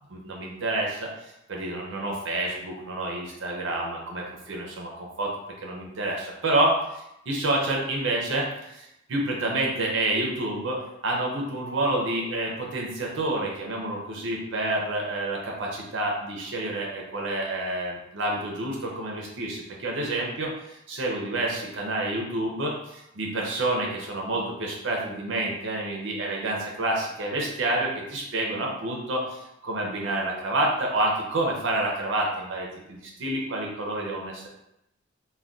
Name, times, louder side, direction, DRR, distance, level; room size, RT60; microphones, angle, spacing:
voice 1, 0.1-34.5, right 2 dB, 65° right, -2 dB, 0.5 m, -28 dB
2.3 x 2.2 x 3.7 m, 0.84 s
head